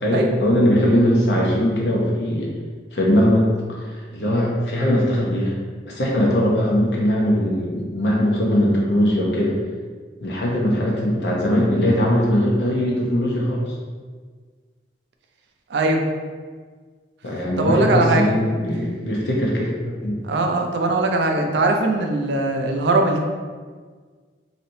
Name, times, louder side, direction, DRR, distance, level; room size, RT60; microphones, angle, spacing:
voice 1, 0.0-2.5 2.9-3.4 3.7-5.5 5.9-9.5 10.2-13.8 17.2-20.2, equal, 70° left, -3 dB, 0.8 m, -20 dB
voice 2, 15.7-16.0 17.6-18.2 20.2-23.2, right 2 dB, 70° right, 3 dB, 0.4 m, -20 dB
3.2 x 2.8 x 2.7 m, 1.5 s
head